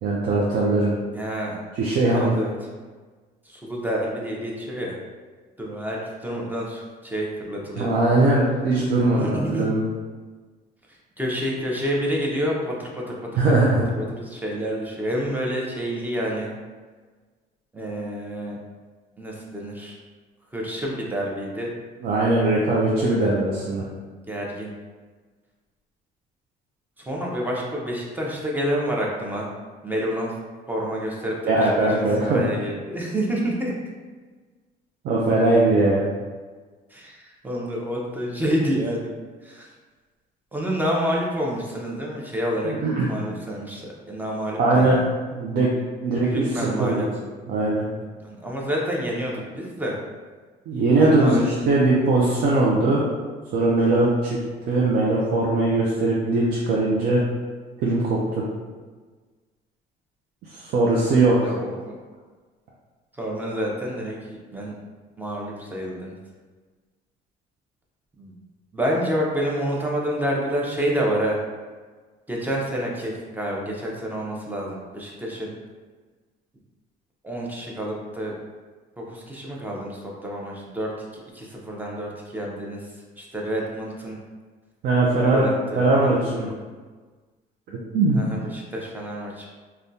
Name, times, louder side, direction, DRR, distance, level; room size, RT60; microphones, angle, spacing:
voice 1, 0.0-0.9 1.8-2.3 7.8-9.9 13.4-13.8 22.0-23.8 31.5-32.4 35.0-36.1 42.6-43.1 44.6-45.0 45.3-45.7 46.0-47.0 47.5-47.9 50.7-53.0 53.5-54.4 54.7-57.2 57.8-58.4 60.5-61.5 84.8-85.5 85.8-86.5 87.9-88.2, right 2 dB, 65° right, -4 dB, 0.5 m, -20 dB
voice 2, 1.1-1.6 2.1-2.5 3.4-5.0 5.6-7.9 9.1-9.7 10.9-16.6 17.7-18.6 19.2-20.0 20.5-21.7 24.3-24.7 27.0-29.5 29.8-30.4 30.7-33.7 36.9-39.1 39.4-39.7 40.5-42.8 43.0-45.0 46.3-47.1 48.2-50.0 51.0-51.5 53.8-54.1 61.4-62.0 63.1-64.7 65.2-66.2 68.2-68.4 68.7-71.4 72.3-75.5 77.2-78.3 79.0-82.9 83.2-84.2 85.3-86.1 88.1-89.5, equal, 10° right, -3 dB, 0.6 m, -28 dB
3.5 x 2.2 x 2.6 m, 1.4 s
cardioid pair, 110°, 17 cm